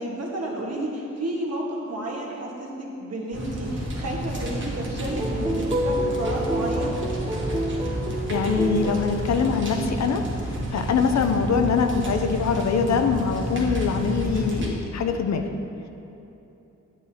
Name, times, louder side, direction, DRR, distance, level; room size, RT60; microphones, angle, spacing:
voice 1, 0.0-6.9, right 1 dB, 60° right, -2 dB, 1.4 m, -31 dB
sound 1, 3.3-14.7, right 1 dB, 40° right, 1.2 m, -30 dB
sound 2, 5.1-9.2, equal, 15° right, 0.5 m, -28 dB
voice 2, 8.3-10.2 10.7-15.4, left 5 dB, 65° left, 6 dB, 0.6 m, -23 dB
9.8 x 9.1 x 2.8 m, 3.0 s
wide cardioid pair, 140°, 29 cm